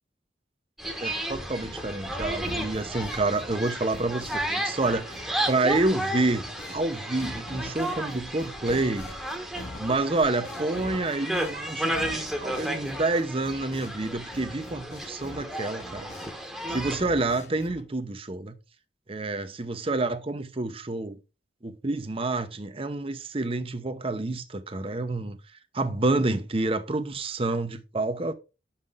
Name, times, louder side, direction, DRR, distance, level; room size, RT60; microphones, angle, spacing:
sound 1, 0.8-17.0, right 1 dB, ahead, 1.1 m, -33 dB
voice 1, 1.0-6.4 6.7-9.1 9.8-16.1 16.7-18.6 19.1-21.2 21.6-25.4 25.7-28.3, right 2 dB, 30° right, 0.7 m, -28 dB
sound 2, 2.4-4.5 4.8-6.8 7.2-14.1 14.3-16.4 16.7-17.8, left 1 dB, 40° left, 1.4 m, -44 dB
6.6 x 5.7 x 3.6 m
head